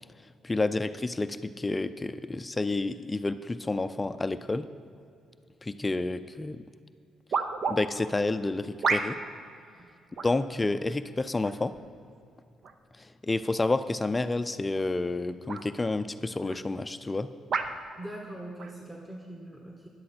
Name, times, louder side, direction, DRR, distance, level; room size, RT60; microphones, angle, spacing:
voice 1, 0.4-4.7 5.6-6.6 7.7-9.2 10.2-11.8 13.0-17.3, left 2 dB, 20° left, 11 dB, 0.4 m, -29 dB
sound 1, 6.3-6.4 7.3-7.8 8.8-9.3 10.2-10.4 11.4-11.8 12.6-12.8 14.7-14.9 15.5-15.6 16.5-16.6 17.5-17.8 18.6-18.7, right 5 dB, 60° right, 0.8 m, -30 dB
voice 2, 18.0-19.9, right 1 dB, 15° right, 0 dB, 1.4 m, -42 dB
13.0 x 10.5 x 4.3 m, 2.4 s
cardioid pair, 90°, 0 cm